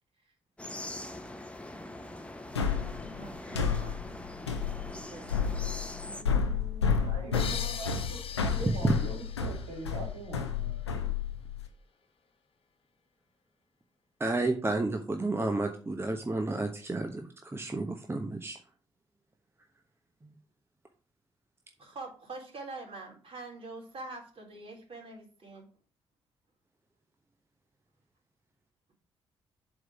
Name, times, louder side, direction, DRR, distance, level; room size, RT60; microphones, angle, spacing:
sound 1, 0.6-6.2, left 1 dB, 10° left, 1.0 m, -42 dB
sound 2, 2.6-11.7, left 6 dB, 90° left, 0.6 m, -31 dB
voice 1, 2.9-4.0 4.9-7.0 21.8-25.7, right 2 dB, 40° right, -1 dB, 3.5 m, -46 dB
voice 2, 6.9-11.1, right 3 dB, 70° right, -2 dB, 2.5 m, -43 dB
sound 3, 7.3-10.9, left 7 dB, 45° left, 1.1 m, -42 dB
voice 3, 14.2-18.6, right 2 dB, 15° right, 4 dB, 1.0 m, -31 dB
7.7 x 3.9 x 6.1 m, 0.41 s
figure-of-eight pair, 40°, 14 cm